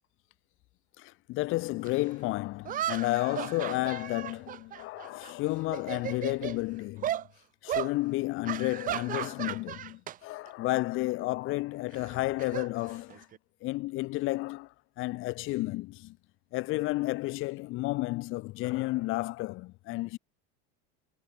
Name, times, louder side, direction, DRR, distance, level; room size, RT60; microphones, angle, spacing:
voice 1, 1.0-7.2 7.6-13.2 13.6-14.7 15.0-16.2 16.5-20.2, left 20 dB, 45° left, 6.4 m, -32 dB
sound 1, 1.8-1.9 2.6-5.3 5.6-6.6 7.0-7.3 7.7-7.9 8.4-10.2 10.5-10.7 11.9-13.4, right 11 dB, 30° right, 2.4 m, -35 dB
cardioid pair, 170°, 29 cm